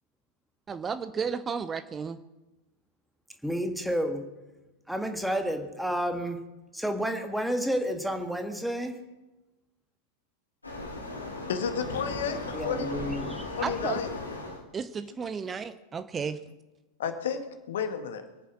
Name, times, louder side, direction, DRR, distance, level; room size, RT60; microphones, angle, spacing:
voice 1, 0.7-2.2 13.6-14.0 14.7-16.4, right 6 dB, 20° right, 12 dB, 0.7 m, -33 dB
voice 2, 3.4-4.3 4.9-6.4 6.7-9.0 12.5-13.5, equal, ahead, 6 dB, 1.8 m, -30 dB
Waves surf, 10.6-14.6, left 2 dB, 80° left, 3.1 m, -36 dB
voice 3, 11.5-12.9 13.6-14.1 17.0-18.2, left 7 dB, 60° left, 8 dB, 1.8 m, -32 dB
23.5 x 9.2 x 6.3 m, 1.1 s
figure-of-eight pair, 90°, 0 cm